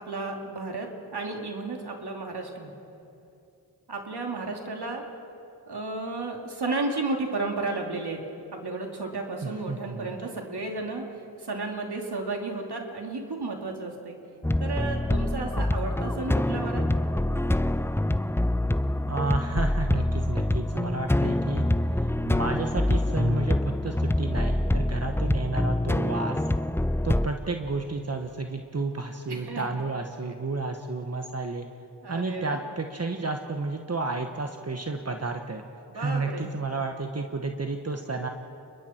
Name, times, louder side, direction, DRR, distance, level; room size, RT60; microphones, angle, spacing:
voice 1, 0.0-2.7 3.9-5.0 5.7-8.2 8.5-14.2 14.6-16.9 29.3-29.8 30.2-30.3 32.0-32.6 35.9-36.5, right 3 dB, 70° right, 2 dB, 2.9 m, -33 dB
voice 2, 9.4-10.1 19.1-21.6 22.0-26.4 27.0-31.6 32.1-35.6 35.9-38.3, right 3 dB, 40° right, 4 dB, 1.3 m, -31 dB
sound 1, 14.4-27.3, left 1 dB, 5° left, 0.5 m, -25 dB
29.0 x 22.0 x 4.5 m, 2.7 s
cardioid pair, 55°, 40 cm